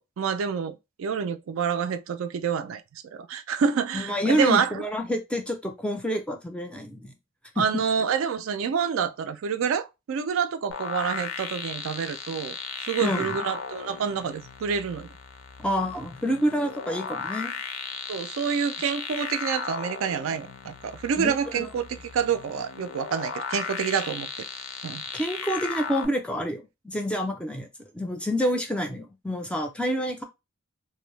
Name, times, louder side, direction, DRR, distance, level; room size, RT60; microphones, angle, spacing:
voice 1, 0.0-4.8 7.6-15.1 18.1-24.3 24.8-25.0, right 6 dB, 70° right, 0.3 m, -28 dB
voice 2, 3.9-7.1 7.6-7.7 13.0-13.3 15.6-17.5 21.2-21.7 25.1-27.7 27.9-30.2, equal, 5° left, 0.4 m, -28 dB
sound 1, 10.7-26.1, left 6 dB, 75° left, 0.5 m, -36 dB
2.6 x 2.0 x 3.0 m
head